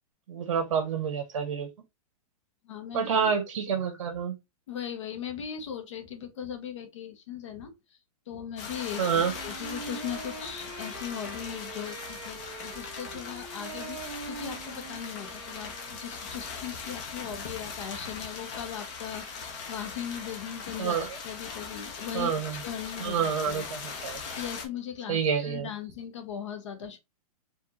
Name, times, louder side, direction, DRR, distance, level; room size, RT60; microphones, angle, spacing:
voice 1, 0.3-1.7 2.9-4.3 9.0-9.3 20.8-21.1 22.1-22.6 23.0-24.2 25.1-25.7, right 7 dB, 55° right, 1.3 m, -28 dB
voice 2, 2.6-3.3 4.7-8.0 8.3-23.6 24.4-27.0, left 9 dB, 50° left, 1.1 m, -39 dB
sound 1, 8.6-24.7, left 5 dB, 10° left, 0.3 m, -40 dB
Wind instrument woodwind instrument, 8.7-16.6, right 5 dB, 20° right, 1.3 m, -44 dB
4.5 x 2.6 x 3.0 m
hypercardioid pair, 180°, 20 cm